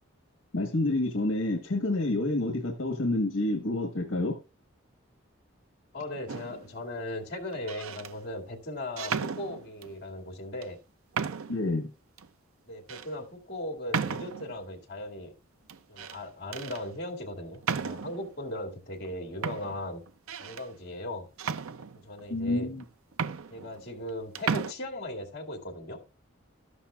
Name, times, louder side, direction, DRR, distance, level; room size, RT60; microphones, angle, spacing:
voice 1, 0.5-4.4 11.5-11.9 22.3-22.8, left 2 dB, 75° left, 1.3 m, -28 dB
voice 2, 5.9-10.8 12.7-15.3 15.9-20.0 20.4-21.3 21.9-22.7 23.5-26.0, left 1 dB, 50° left, 2.3 m, -38 dB
sound 1, 6.3-6.7 7.5-8.1 9.0-9.9 10.6-10.7 11.1-11.7 12.2-12.3 12.9-13.1 13.9-14.6 15.7-16.2 16.5-16.8 17.6-18.3 19.0-19.1 19.4-20.7 21.4-22.2 22.8-22.9 23.1-24.1 24.4-24.7, right 6 dB, 80° right, 0.5 m, -34 dB
13.0 x 11.5 x 2.4 m
head